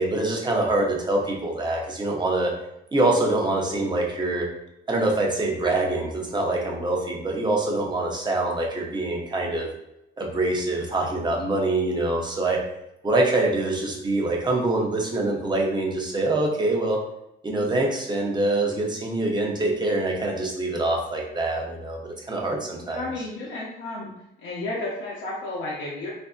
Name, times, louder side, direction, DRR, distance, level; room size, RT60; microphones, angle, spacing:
voice 1, 0.0-2.5 2.9-4.5 4.9-9.7 10.2-12.6 13.0-17.0 17.4-23.0, right 2 dB, 20° right, 0 dB, 0.7 m, -25 dB
voice 2, 22.9-24.1 24.4-26.1, left 2 dB, 75° left, -6 dB, 0.7 m, -32 dB
3.4 x 2.6 x 2.4 m, 0.84 s
cardioid pair, 90°, 20 cm